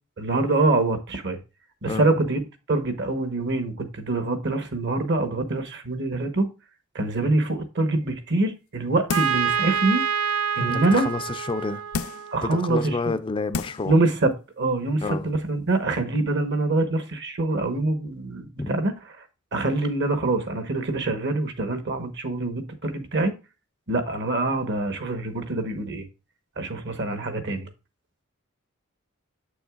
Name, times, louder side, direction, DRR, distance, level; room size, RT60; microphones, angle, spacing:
voice 1, 0.2-1.4 1.8-2.4 2.7-6.5 6.9-10.0 10.6-11.1 12.3-13.0 13.8-18.9 19.5-23.3 23.9-26.1 26.6-27.7, right 2 dB, 55° right, 1.1 m, -25 dB
sound 1, 9.1-9.5 10.0-10.1 11.9-12.4 13.1-13.2 13.5-13.9 14.3-14.4, left 5 dB, 75° left, 0.5 m, -31 dB
Trumpet, 9.1-12.8, right 7 dB, 70° right, 0.5 m, -27 dB
voice 2, 10.6-11.8 12.4-14.0 15.0-15.3 18.6-18.7, left 3 dB, 25° left, 0.4 m, -29 dB
7.6 x 6.3 x 2.4 m
head